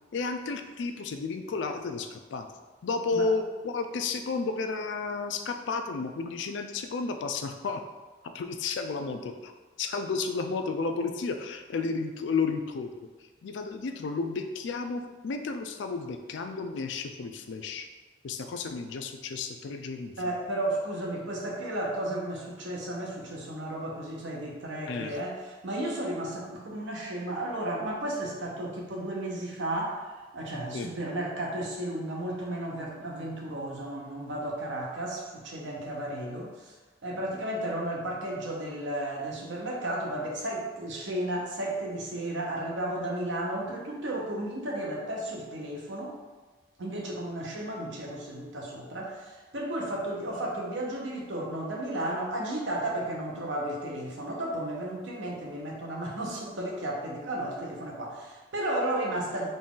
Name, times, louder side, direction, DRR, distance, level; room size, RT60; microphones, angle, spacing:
voice 1, 0.1-2.5 2.8-7.8 8.2-12.9 13.4-17.9 18.2-20.1 24.9-25.2 30.7-31.0, left 4 dB, 70° left, 6 dB, 0.4 m, -32 dB
voice 2, 20.2-36.8 37.0-46.1 46.8-59.5, right 1 dB, 80° right, -2 dB, 0.8 m, -33 dB
3.9 x 2.4 x 3.7 m, 1.3 s
head